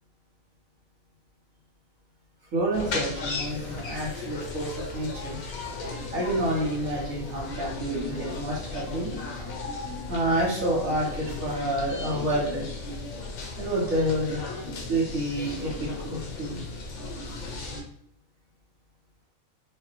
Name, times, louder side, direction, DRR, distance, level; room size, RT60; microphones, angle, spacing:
voice 1, 2.5-5.4 6.1-9.1 10.1-12.6 13.6-14.4 14.9-16.6, right 1 dB, 75° right, -4 dB, 1.3 m, -28 dB
sound 1, 2.7-17.8, left 3 dB, 85° left, 1.2 m, -36 dB
4.7 x 2.2 x 3.0 m, 0.74 s
omnidirectional pair, 1.4 m